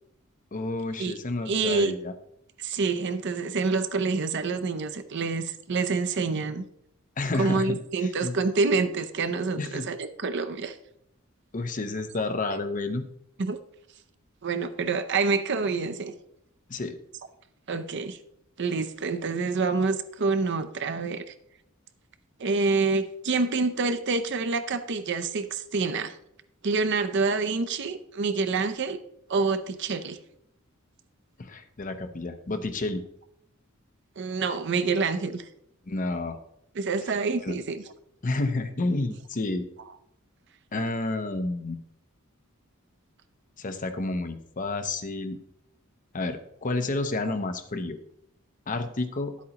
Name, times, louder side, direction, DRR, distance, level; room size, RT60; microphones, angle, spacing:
voice 1, 0.5-2.1 7.2-8.3 9.6-9.8 11.5-13.0 16.7-16.9 31.4-33.0 35.9-36.4 37.4-37.6 38.2-39.7 40.7-41.8 43.6-45.4 46.1-48.0 48.7-49.3, left 2 dB, 40° left, 8 dB, 0.7 m, -30 dB
voice 2, 1.5-1.9 2.6-6.6 7.4-10.8 13.4-13.6 14.4-16.1 17.7-18.2 18.6-21.2 22.4-26.1 26.6-29.0 29.3-30.2 34.2-35.4 36.7-37.8, right 4 dB, 55° right, 10 dB, 0.6 m, -27 dB
10.5 x 8.3 x 2.9 m, 0.75 s
head